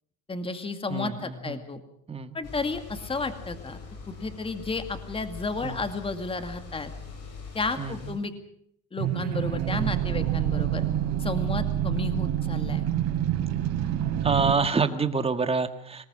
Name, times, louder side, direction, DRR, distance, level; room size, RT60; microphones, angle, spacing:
voice 1, 0.3-1.8 2.3-3.8 4.1-6.9 7.5-8.3 8.9-10.9 11.2-12.8, left 3 dB, 20° left, 8 dB, 2.2 m, -32 dB
voice 2, 0.9-1.7 2.1-2.3 5.6-5.8 7.8-8.0 14.2-16.1, right 4 dB, 20° right, 9 dB, 1.9 m, -27 dB
sound 1, 2.4-8.1, left 4 dB, 60° left, 8.0 m, -42 dB
sound 2, 9.0-14.6, right 11 dB, 60° right, 3.8 m, -27 dB
24.5 x 19.5 x 6.3 m, 0.69 s
cardioid pair, 110°, 29 cm